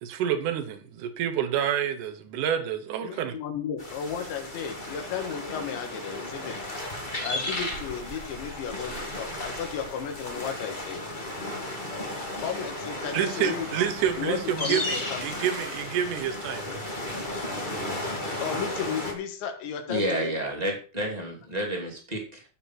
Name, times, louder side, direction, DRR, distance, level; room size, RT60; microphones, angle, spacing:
voice 1, 0.0-3.4 13.1-16.6, right 9 dB, 80° right, 1.8 m, -28 dB
voice 2, 3.0-6.6 7.2-11.0 12.4-13.7 14.2-15.4 18.4-20.4, left 7 dB, 80° left, 4.1 m, -34 dB
sound 1, 3.8-19.1, left 1 dB, 25° left, 1.0 m, -34 dB
voice 3, 19.9-22.4, right 1 dB, 15° right, 1.7 m, -30 dB
14.0 x 7.3 x 4.5 m
omnidirectional pair, 5.2 m